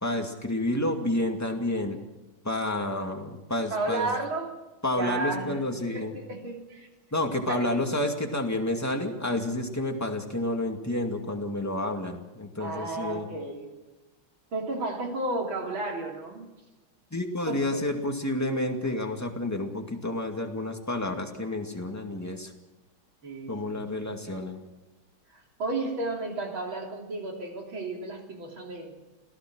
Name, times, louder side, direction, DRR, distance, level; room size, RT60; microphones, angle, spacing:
voice 1, 0.0-2.0 2.4-4.1 4.8-6.1 7.1-13.3 17.1-22.5 23.5-24.6, left 1 dB, 10° left, 3 dB, 2.1 m, -30 dB
voice 2, 3.7-4.6 4.9-6.9 7.5-7.7 12.6-13.7 14.5-16.5 17.4-17.9 23.2-24.1 25.3-29.0, right 2 dB, 70° right, 1 dB, 4.0 m, -33 dB
28.5 x 17.5 x 6.3 m, 1.0 s
omnidirectional pair, 2.3 m